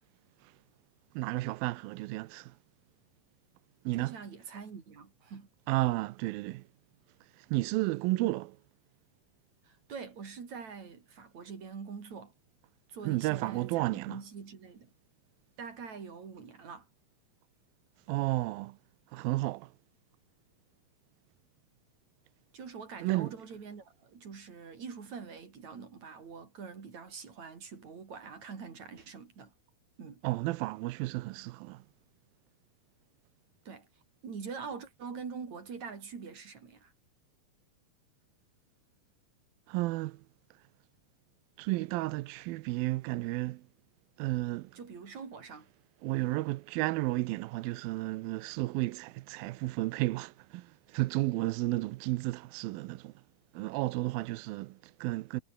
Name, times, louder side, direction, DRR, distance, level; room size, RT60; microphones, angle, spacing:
voice 1, 1.2-2.5 3.9-4.2 5.7-6.6 7.3-8.6 13.0-14.2 18.1-18.8 19.1-19.7 23.0-23.4 30.2-31.8 39.7-40.2 41.6-43.6 44.2-44.8 46.0-53.1 53.5-55.4, right 19 dB, 85° right, 2.4 m, -32 dB
voice 2, 3.9-5.5 9.6-12.3 12.9-14.9 15.6-16.9 22.5-29.5 30.0-30.2 33.7-33.9 34.2-36.9 44.7-45.7, right 5 dB, 50° right, 4.6 m, -44 dB
omnidirectional pair, 4.3 m